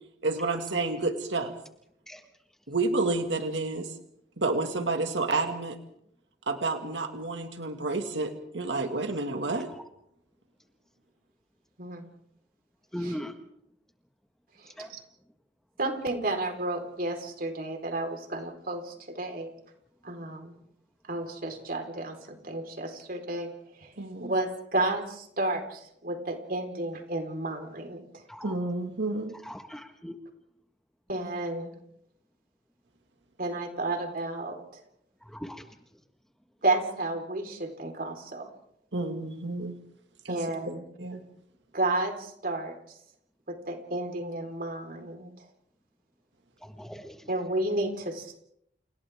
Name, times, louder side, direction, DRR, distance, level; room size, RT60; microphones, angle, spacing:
voice 1, 0.2-1.5 2.7-3.9 4.4-5.8 6.5-9.7 24.0-24.3 28.4-29.4 38.9-39.7 40.2-40.4 41.0-41.2, right 3 dB, 80° right, 5 dB, 2.1 m, -30 dB
voice 2, 11.8-12.1 13.0-13.2 14.6-15.0 15.8-19.5 20.0-20.5 21.1-23.9 24.2-28.2 31.1-31.8 33.4-34.8 36.6-38.5 40.3-40.8 41.7-43.0 43.5-45.3 47.3-48.4, right 2 dB, 55° right, 4 dB, 4.4 m, -32 dB
voice 3, 12.9-13.3 14.8-14.9 28.3-28.5 29.5-30.1 35.3-35.6 46.8-47.1, equal, 5° left, 5 dB, 1.7 m, -38 dB
30.0 x 29.5 x 3.7 m, 0.73 s
head